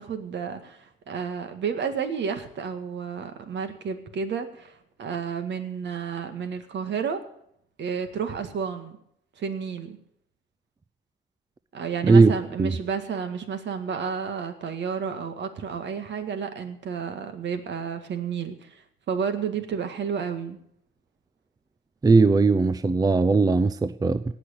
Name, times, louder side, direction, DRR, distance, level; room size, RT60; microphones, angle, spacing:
voice 1, 0.0-7.2 7.8-9.0 9.4-10.0 11.7-18.8 19.1-20.6, right 6 dB, 65° right, 1.9 m, -31 dB
voice 2, 22.0-24.2, right 4 dB, 20° right, 0.5 m, -18 dB
18.0 x 6.2 x 8.6 m
cardioid pair, 90°, 20 cm